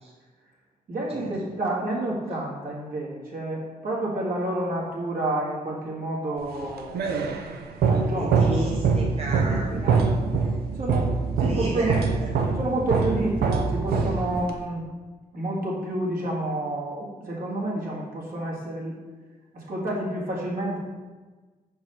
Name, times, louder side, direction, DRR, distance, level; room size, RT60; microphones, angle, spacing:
voice 1, 0.9-7.2 7.9-8.6 9.5-10.0 10.7-12.0 12.5-14.8 15.3-19.0 19.5-20.8, right 1 dB, 70° right, -4 dB, 1.9 m, -29 dB
sound 1, 6.5-14.7, right 4 dB, 85° right, 0.6 m, -24 dB
voice 2, 8.2-10.1 11.4-12.3, right 2 dB, 40° right, -1 dB, 0.8 m, -33 dB
5.3 x 4.7 x 4.4 m, 1.3 s
supercardioid pair, 55°, 16 cm